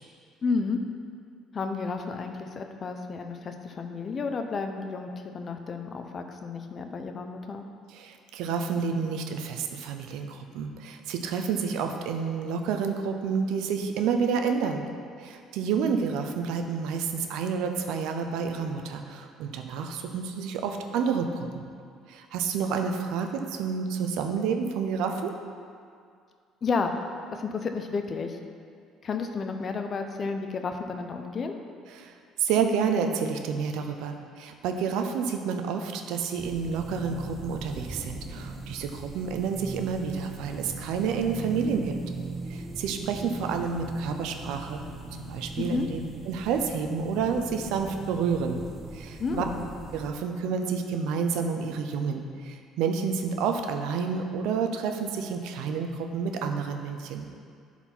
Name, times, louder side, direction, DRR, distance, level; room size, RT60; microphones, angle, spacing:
voice 1, 0.4-0.8 1.5-7.7 26.6-26.9 27.3-28.4 29.0-31.5 45.6-45.9 49.2-49.6, left 4 dB, 45° left, 6 dB, 0.8 m, -31 dB
voice 2, 7.9-14.9 15.2-21.7 22.1-25.3 31.9-42.0 42.5-44.8 45.3-46.0 46.3-48.6 48.9-49.4 49.9-57.3, right 6 dB, 80° right, 5 dB, 0.7 m, -29 dB
sound 1, 36.4-50.1, right 2 dB, 30° right, 1.3 m, -39 dB
11.0 x 4.4 x 4.5 m, 2.2 s
supercardioid pair, 85°, 0 cm